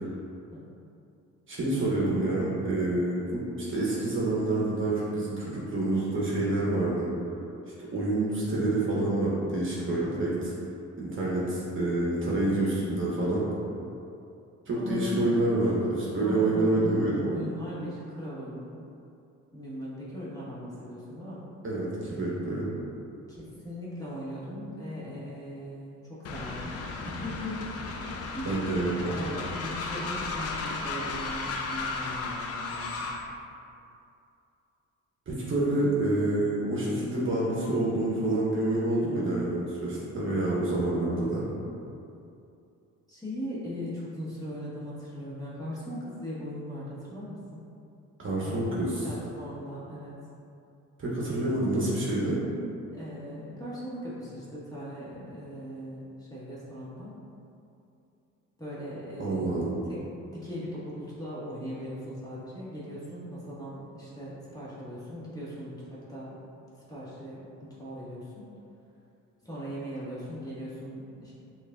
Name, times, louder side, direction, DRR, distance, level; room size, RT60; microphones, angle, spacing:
voice 1, 1.5-7.1 7.9-10.5 11.0-13.4 14.7-17.3 21.6-22.7 28.4-29.0 35.3-41.4 48.2-49.0 51.0-52.4 59.2-59.8, right 2 dB, 40° right, -6 dB, 1.0 m, -27 dB
voice 2, 14.7-15.4 16.2-18.7 19.5-21.4 23.3-27.6 28.0-28.6 28.9-32.9 40.9-41.2 41.4-41.6 43.1-47.6 48.4-48.6 49.0-50.1 52.9-57.1 58.6-66.3 66.9-68.4 69.4-71.3, equal, 10° left, -9 dB, 1.2 m, -39 dB
Train, 26.2-33.3, left 3 dB, 55° left, 0.5 m, -35 dB
6.3 x 2.5 x 2.3 m, 2.6 s
cardioid pair, 90°, 30 cm